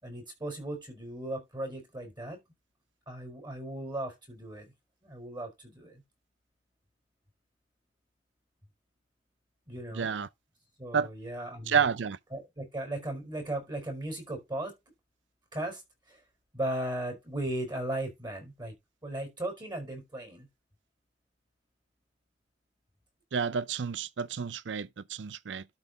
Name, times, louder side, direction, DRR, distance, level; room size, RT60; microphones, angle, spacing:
voice 1, 0.0-2.4 3.1-4.7 5.0-6.0 9.7-10.1 10.8-11.8 12.3-14.7 15.5-15.8 16.1-16.2 16.5-18.7 19.0-20.5, right 1 dB, 25° right, 4.7 m, -37 dB
voice 2, 9.9-10.3 10.9-11.1 11.7-12.2 23.3-25.7, right 6 dB, 80° right, 0.5 m, -30 dB
12.0 x 4.3 x 3.9 m
head